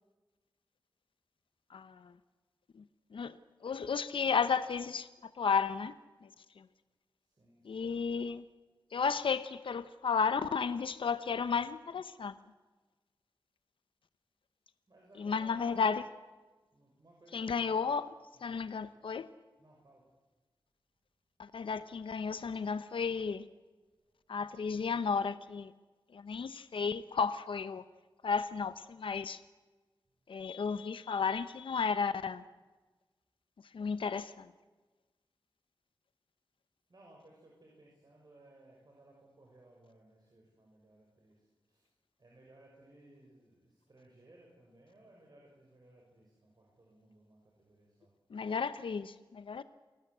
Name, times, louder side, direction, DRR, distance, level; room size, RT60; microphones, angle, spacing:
voice 1, 1.7-2.1 2.7-2.8 3.1-3.4 3.6-5.9 6.2-6.3 6.6-6.7 7.6-8.4 8.9-12.3 15.2-16.0 17.3-18.1 18.4-19.3 21.4-23.5 24.3-25.7 26.1-27.8 28.2-29.4 30.3-32.4 33.7-34.5 48.3-49.6, left 5 dB, 90° left, 13 dB, 0.8 m, -33 dB
voice 2, 7.2-7.9 14.9-15.8 16.7-17.9 18.3-18.6 19.6-20.1 24.2-24.3 36.9-41.9 42.2-48.1, right 1 dB, 50° right, -1 dB, 6.3 m, -61 dB
28.5 x 19.0 x 8.1 m, 1.3 s
wide cardioid pair, 65°, 9 cm